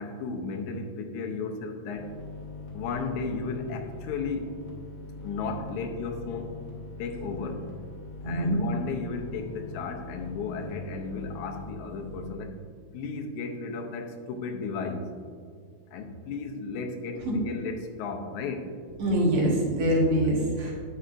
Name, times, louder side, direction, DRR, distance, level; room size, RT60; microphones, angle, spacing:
voice 1, 0.0-2.2 2.7-4.6 5.2-6.6 7.0-7.7 8.2-12.6 12.9-15.1 15.9-18.7, left 4 dB, 90° left, 4 dB, 2.2 m, -34 dB
sound 1, 1.9-12.3, left 3 dB, 60° left, 1.1 m, -42 dB
voice 2, 8.2-8.6 17.3-17.4 19.0-20.7, equal, 60° right, -3 dB, 2.2 m, -24 dB
9.6 x 7.6 x 2.5 m, 2.1 s
omnidirectional pair, 3.4 m